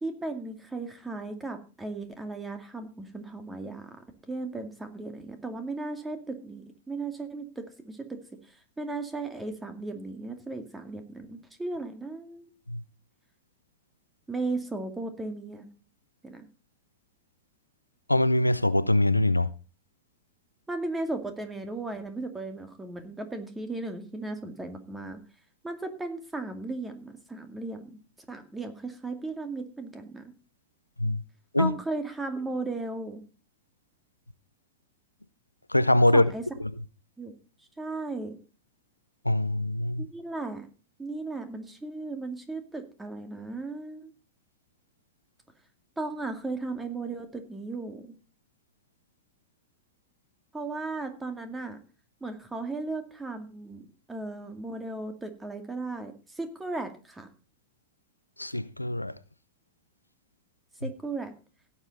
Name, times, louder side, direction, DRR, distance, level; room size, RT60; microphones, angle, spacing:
voice 1, 0.0-8.2 8.8-12.5 14.3-15.7 16.2-16.5 20.7-25.2 25.6-28.0 28.3-30.3 31.6-33.2 36.1-36.4 37.2-37.3 37.8-38.4 40.0-40.7 41.0-44.1 46.0-48.1 50.5-51.8 52.2-57.3 60.8-61.3, right 3 dB, 10° right, 2.3 m, -36 dB
voice 2, 18.1-19.5 31.0-31.2 31.5-31.7 35.7-36.3 39.3-40.1 58.4-59.1, left 1 dB, 85° left, 0.6 m, -23 dB
16.0 x 7.7 x 4.1 m
figure-of-eight pair, 90°, 0 cm